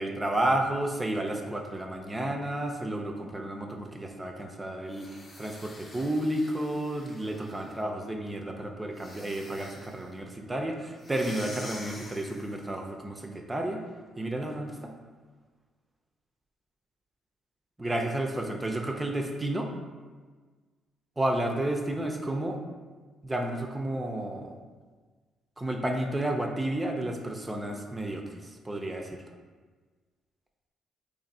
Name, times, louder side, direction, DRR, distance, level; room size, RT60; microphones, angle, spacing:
voice 1, 0.0-13.8 14.2-14.9 17.8-19.7 21.2-22.6 23.2-24.5 25.6-29.2, right 1 dB, 15° right, 2 dB, 0.4 m, -31 dB
sound 1, 4.9-7.8 8.9-10.1 11.0-12.7, left 2 dB, 40° left, 0.7 m, -47 dB
3.1 x 2.5 x 4.1 m, 1.4 s
cardioid pair, 90°, 0 cm